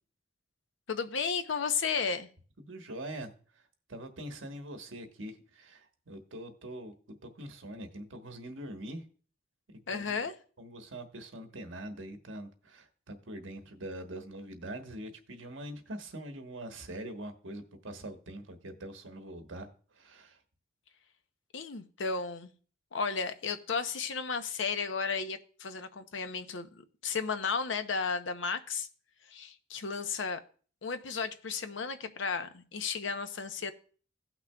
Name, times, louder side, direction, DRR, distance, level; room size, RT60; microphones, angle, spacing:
voice 1, 0.9-2.3 9.9-10.3 21.5-22.5 22.9-28.9 29.3-30.4 30.8-33.7, left 5 dB, 70° left, 9 dB, 0.7 m, -34 dB
voice 2, 2.6-3.3 3.9-9.0 9.7-10.3 10.6-19.7 19.9-20.4, right 1 dB, 85° right, 6 dB, 1.2 m, -43 dB
16.5 x 6.0 x 2.3 m, 0.42 s
head